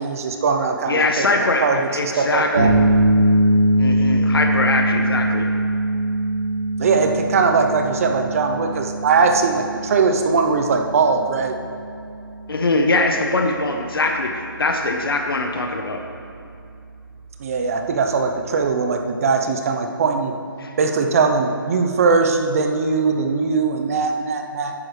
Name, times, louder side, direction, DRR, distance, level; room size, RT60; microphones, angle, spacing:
voice 1, 0.0-2.7 6.8-11.6 17.4-20.3 20.8-24.7, right 4 dB, 40° right, 5 dB, 0.7 m, -20 dB
voice 2, 0.9-1.7 1.9-2.7 3.8-5.5 12.5-16.0 20.6-20.7, left 2 dB, 80° left, 4 dB, 1.0 m, -21 dB
sound 1, 2.6-18.5, right 1 dB, 80° right, 1.8 m, -23 dB
10.5 x 9.9 x 3.3 m, 2.6 s
hypercardioid pair, 155°, 12 cm